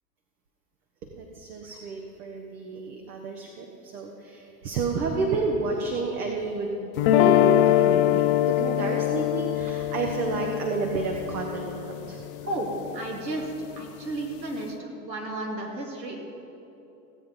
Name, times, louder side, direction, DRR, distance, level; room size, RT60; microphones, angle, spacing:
voice 1, 1.1-12.2, right 4 dB, 60° right, 1 dB, 1.5 m, -30 dB
sound 1, 7.0-13.1, left 13 dB, 35° left, 0.4 m, -23 dB
voice 2, 12.5-13.5 13.8-16.2, right 1 dB, 80° right, -1 dB, 2.6 m, -33 dB
16.5 x 8.2 x 5.3 m, 2.9 s
figure-of-eight pair, 90°, 50 cm